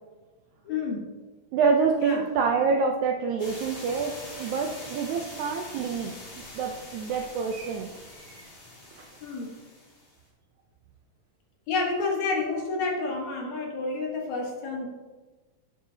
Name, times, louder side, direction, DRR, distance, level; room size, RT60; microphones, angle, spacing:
voice 1, 0.6-1.1 2.0-2.2 9.2-9.5 11.7-14.9, left 3 dB, 60° left, 0 dB, 2.4 m, -29 dB
voice 2, 1.5-6.2 6.6-8.5 9.0-9.1, right 5 dB, 80° right, 2 dB, 1.7 m, -27 dB
sound 1, 3.4-10.1, left 1 dB, 35° left, 2.3 m, -44 dB
11.0 x 7.6 x 2.8 m, 1.2 s
omnidirectional pair, 4.0 m